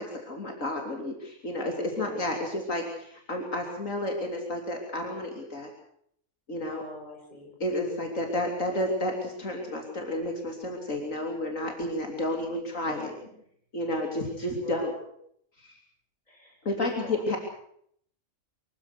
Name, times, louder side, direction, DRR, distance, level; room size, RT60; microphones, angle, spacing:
voice 1, 0.0-5.7 6.5-6.8 7.6-13.1 13.7-14.9 15.6-15.8 16.7-17.4, left 1 dB, 75° left, 2 dB, 3.6 m, -31 dB
voice 2, 1.9-2.2 6.7-8.0 14.4-14.8 16.3-17.2, left 1 dB, 30° left, 0 dB, 7.4 m, -44 dB
24.5 x 15.5 x 8.3 m, 0.68 s
omnidirectional pair, 1.4 m